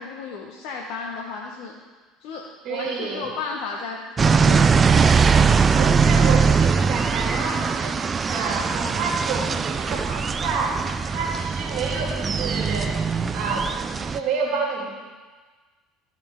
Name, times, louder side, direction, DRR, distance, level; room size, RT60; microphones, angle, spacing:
voice 1, 0.0-1.7 2.2-2.4 2.7-5.2, left 4 dB, 55° left, -1 dB, 0.9 m, -34 dB
voice 2, 2.6-3.3 5.7-13.0 13.3-13.7 14.0-14.9, right 4 dB, 50° right, -4 dB, 2.7 m, -29 dB
sound 1, 4.2-14.2, right 5 dB, 30° right, 0.4 m, -21 dB
14.0 x 5.7 x 3.7 m, 1.4 s
figure-of-eight pair, 65°, 0 cm